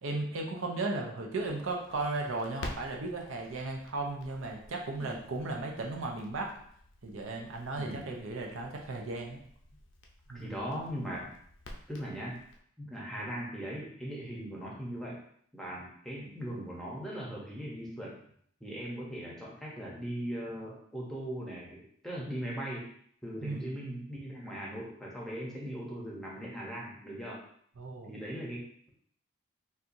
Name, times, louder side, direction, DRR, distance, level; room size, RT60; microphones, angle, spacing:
voice 1, 0.0-6.5 7.0-9.4 10.3-10.5 23.4-23.7 27.8-28.1, right 2 dB, 80° right, 1 dB, 0.6 m, -35 dB
Crackle, 1.4-12.6, left 1 dB, 65° left, 0.5 m, -50 dB
voice 2, 10.3-11.3 11.9-12.4 12.8-15.2 15.5-18.2 18.6-22.9 23.2-27.4 28.1-28.9, equal, ahead, -4 dB, 0.7 m, -39 dB
4.3 x 2.3 x 2.6 m, 0.64 s
head